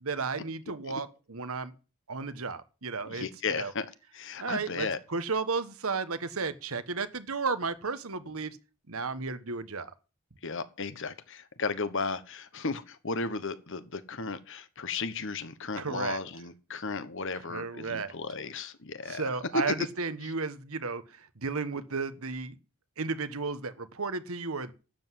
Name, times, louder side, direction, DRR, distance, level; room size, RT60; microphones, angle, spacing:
voice 1, 0.0-1.7 2.1-3.3 3.6-3.7 4.4-8.6 8.9-9.9 15.8-16.2 17.3-18.1 19.0-21.0 21.4-22.6 23.0-24.7, right 4 dB, 70° right, 1.3 m, -33 dB
voice 2, 3.1-3.9 4.1-5.0 10.4-19.3, left 4 dB, 55° left, 1.2 m, -35 dB
12.0 x 7.9 x 7.8 m
head